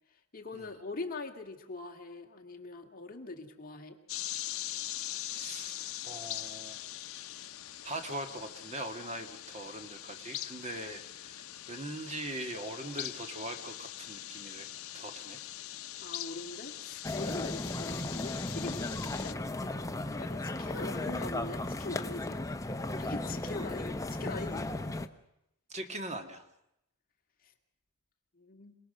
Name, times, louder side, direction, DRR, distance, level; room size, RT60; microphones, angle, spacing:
voice 1, 0.3-4.0 16.0-19.4 20.2-22.4 23.0-24.7 27.4-27.5 28.4-28.8, left 3 dB, 40° left, 2 dB, 2.0 m, -42 dB
sound 1, 4.1-19.3, left 13 dB, 70° left, 0.8 m, -42 dB
voice 2, 5.3-5.8 6.0-6.8 7.8-14.7 14.9-15.4 20.6-20.8 25.7-26.4, right 1 dB, 30° right, 6 dB, 1.7 m, -41 dB
sound 2, 17.0-25.1, left 2 dB, 15° left, 0.8 m, -36 dB
27.0 x 19.0 x 6.7 m, 0.83 s
head